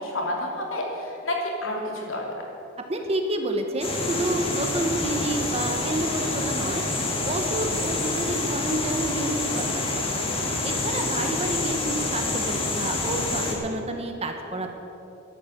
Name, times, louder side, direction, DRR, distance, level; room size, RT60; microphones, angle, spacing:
voice 1, 0.0-2.5 11.1-11.3, left 1 dB, 90° left, 0 dB, 3.1 m, -30 dB
voice 2, 2.9-6.8 7.2-10.1 10.6-14.7, right 1 dB, 30° right, 4 dB, 1.2 m, -29 dB
sound 1, 3.8-13.5, left 2 dB, 30° left, 2.4 m, -27 dB
12.0 x 11.5 x 8.0 m, 3.0 s
head